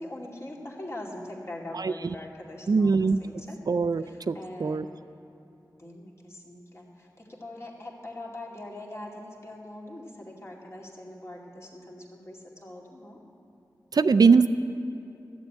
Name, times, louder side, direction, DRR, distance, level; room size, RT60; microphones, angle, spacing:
voice 1, 0.0-3.6 4.0-5.0 5.7-13.2, left 1 dB, 40° left, -3 dB, 2.4 m, -42 dB
voice 2, 2.7-3.2 3.7-4.8 13.9-14.5, right 4 dB, 60° right, 12 dB, 0.4 m, -21 dB
13.0 x 8.0 x 8.6 m, 2.6 s
wide cardioid pair, 60°, 7 cm